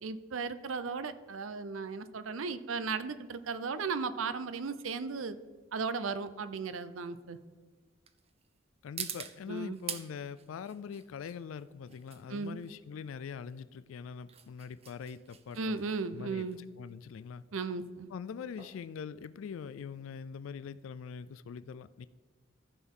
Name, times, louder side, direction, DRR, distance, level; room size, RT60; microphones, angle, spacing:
voice 1, 0.0-5.4 5.7-7.4 9.5-9.8 12.3-12.6 15.6-16.6 17.5-18.1, right 4 dB, 80° right, 13 dB, 0.6 m, -36 dB
sound 1, 3.4-20.0, right 8 dB, 30° right, 0.6 m, -48 dB
voice 2, 8.8-15.8 16.1-17.4 18.1-22.1, left 6 dB, 80° left, 15 dB, 0.3 m, -43 dB
14.5 x 6.2 x 3.7 m, 1.5 s
head